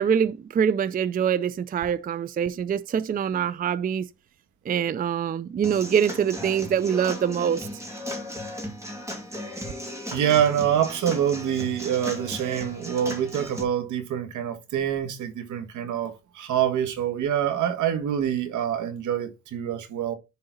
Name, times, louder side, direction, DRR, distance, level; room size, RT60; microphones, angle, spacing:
voice 1, 0.0-4.1 4.7-7.7, right 8 dB, 30° right, 0.4 m, -24 dB
Human voice / Acoustic guitar / Drum, 5.6-13.6, equal, 10° right, 2.5 m, -36 dB
voice 2, 10.1-20.1, right 9 dB, 75° right, 1.6 m, -26 dB
10.5 x 3.9 x 4.0 m
cardioid pair, 90°, 30 cm